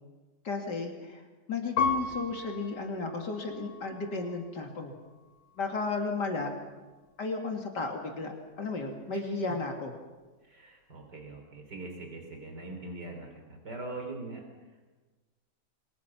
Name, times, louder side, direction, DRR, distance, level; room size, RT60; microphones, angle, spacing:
voice 1, 0.4-1.2 1.5-4.9 5.6-6.5 7.2-9.9, left 3 dB, 75° left, 2 dB, 3.0 m, -34 dB
Piano, 1.8-4.5 5.1-5.8, left 5 dB, 60° left, 4.0 m, -35 dB
voice 2, 10.4-14.8, right 2 dB, 75° right, 3 dB, 4.2 m, -42 dB
29.5 x 24.0 x 6.1 m, 1.3 s
omnidirectional pair, 1.8 m